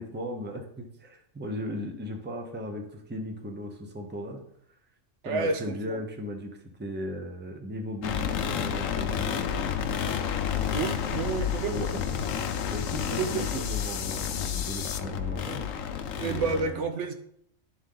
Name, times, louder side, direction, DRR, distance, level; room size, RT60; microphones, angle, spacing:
voice 1, 0.0-4.4 5.2-6.5 6.8-9.7 11.5-12.2 12.7-15.7 16.2-16.8, left 1 dB, 10° right, 0.7 m, -37 dB
voice 2, 5.2-6.0 10.5-11.9 13.2-13.6 16.1-17.1, right 4 dB, 70° right, 0.9 m, -30 dB
sound 1, 8.0-16.6, left 8 dB, 90° left, 1.0 m, -30 dB
sound 2, 9.9-15.0, left 8 dB, 65° left, 0.8 m, -40 dB
11.5 x 3.8 x 3.8 m
omnidirectional pair, 1.3 m